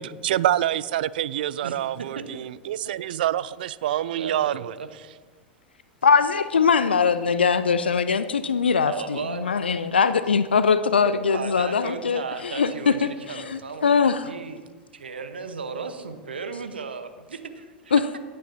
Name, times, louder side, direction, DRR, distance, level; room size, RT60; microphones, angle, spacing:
voice 1, 0.0-4.7, right 12 dB, 60° right, 0.3 m, -26 dB
voice 2, 2.1-2.5 3.1-3.2 4.2-4.9 8.8-9.5 11.0-14.6 14.9-18.2, right 5 dB, 80° right, 0.9 m, -35 dB
voice 3, 6.0-14.3 17.9-18.0, left 5 dB, 80° left, 0.4 m, -22 dB
17.0 x 8.7 x 2.7 m
figure-of-eight pair, 90°, 6 cm